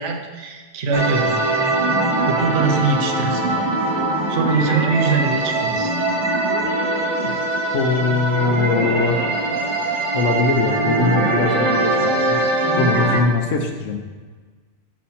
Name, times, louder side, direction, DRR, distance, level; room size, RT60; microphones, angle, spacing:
voice 1, 0.0-1.4 2.3-3.7 4.3-5.9, right 4 dB, 75° right, 4 dB, 1.1 m, -22 dB
sound 1, 0.9-13.2, right 2 dB, 25° right, 0.9 m, -21 dB
voice 2, 7.7-9.4 10.1-12.4 12.8-14.0, left 4 dB, 80° left, 4 dB, 1.2 m, -21 dB
7.6 x 6.3 x 4.3 m, 1.4 s
omnidirectional pair, 1.3 m